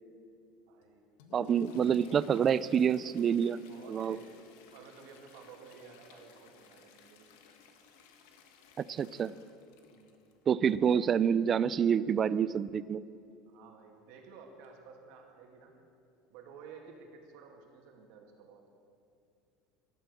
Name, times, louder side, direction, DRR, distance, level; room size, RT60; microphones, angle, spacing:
voice 1, 0.7-1.1 3.7-7.3 9.9-10.3 13.5-15.8 16.3-18.6, right 5 dB, 65° right, 1 dB, 2.4 m, -53 dB
Toilet flush, 0.8-12.8 14.6-14.7 15.1-15.2 16.0-16.1 16.7-17.0 17.4-17.5, left 5 dB, 85° left, 1.5 m, -56 dB
voice 2, 1.3-3.6 3.9-4.2 8.8-9.3 10.5-13.0, right 8 dB, 25° right, 17 dB, 0.3 m, -27 dB
14.5 x 12.5 x 7.0 m, 2.6 s
cardioid pair, 165°, 0 cm